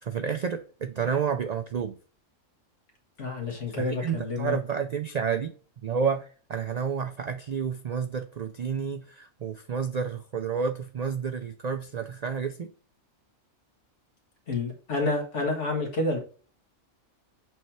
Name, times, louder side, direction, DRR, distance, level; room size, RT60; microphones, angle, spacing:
voice 1, 0.0-1.9 3.7-5.5 5.8-12.7, right 6 dB, 85° right, 8 dB, 0.3 m, -30 dB
voice 2, 3.2-4.6 14.5-16.2, left 2 dB, 65° left, 1 dB, 2.1 m, -29 dB
7.7 x 3.2 x 4.3 m, 0.39 s
omnidirectional pair, 1.3 m